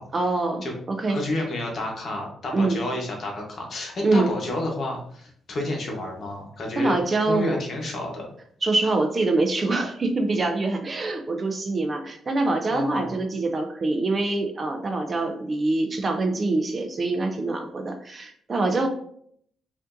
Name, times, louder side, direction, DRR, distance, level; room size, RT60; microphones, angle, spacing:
voice 1, 0.1-0.6 0.9-1.2 2.5-2.8 4.0-4.3 6.8-7.5 8.6-18.9, right 2 dB, 30° right, 5 dB, 0.4 m, -24 dB
voice 2, 1.1-7.0 7.3-8.3 12.7-13.1, left 1 dB, 45° left, 0 dB, 1.0 m, -30 dB
5.0 x 2.5 x 2.5 m, 0.65 s
cardioid pair, 160°, 0 cm